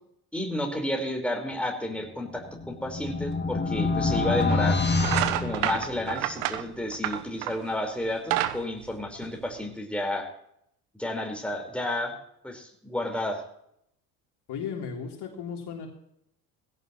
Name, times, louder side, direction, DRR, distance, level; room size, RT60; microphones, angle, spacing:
voice 1, 0.3-4.8 5.4-10.3 10.9-12.2 12.4-13.4, left 1 dB, ahead, 2 dB, 4.5 m, -31 dB
sound 1, 2.3-6.3, left 3 dB, 20° left, 2.2 m, -27 dB
sound 2, 3.6-3.7 4.4-4.6 5.0-7.7 8.1-9.7, right 14 dB, 65° right, 1.1 m, -29 dB
voice 2, 14.5-15.9, left 6 dB, 50° left, 1 dB, 3.6 m, -35 dB
18.5 x 16.5 x 3.1 m, 0.73 s
figure-of-eight pair, 55°, 50 cm